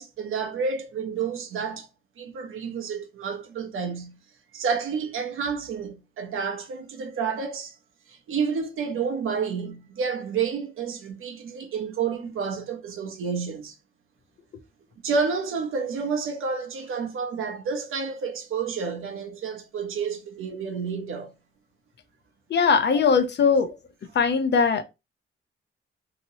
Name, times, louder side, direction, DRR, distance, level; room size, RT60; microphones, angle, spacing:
voice 1, 0.0-1.9 2.2-4.2 4.5-7.8 8.1-13.8 15.0-21.3, right 5 dB, 75° right, 0.8 m, -30 dB
voice 2, 22.5-23.7 24.2-24.8, left 5 dB, 55° left, 0.6 m, -20 dB
2.9 x 2.8 x 2.7 m
cardioid pair, 90°, 21 cm